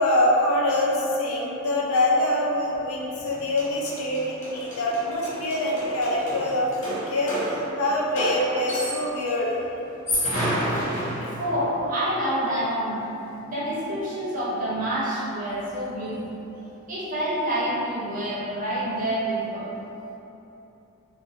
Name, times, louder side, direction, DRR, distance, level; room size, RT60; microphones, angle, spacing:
voice 1, 0.0-6.7 7.1-9.6 11.0-11.3, left 1 dB, 90° left, -3 dB, 0.5 m, -24 dB
sound 1, 3.3-3.4 3.6-9.2 9.9-11.7, equal, 60° left, 0.8 m, -30 dB
voice 2, 11.4-16.2 16.9-19.7, right 1 dB, 40° right, -9 dB, 0.8 m, -27 dB
2.5 x 2.5 x 3.5 m, 2.9 s
head